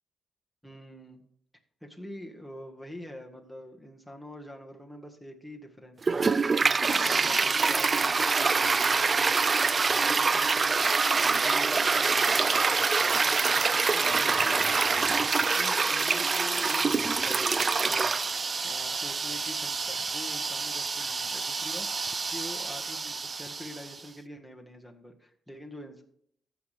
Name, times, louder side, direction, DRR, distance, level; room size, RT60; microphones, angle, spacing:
voice 1, 0.6-1.3 1.8-18.1 18.6-26.0, equal, ahead, 4 dB, 1.7 m, -46 dB
Toilet flush, 6.0-23.9, right 4 dB, 40° right, 0.3 m, -26 dB
14.5 x 5.9 x 3.4 m, 0.67 s
cardioid pair, 80°, 0 cm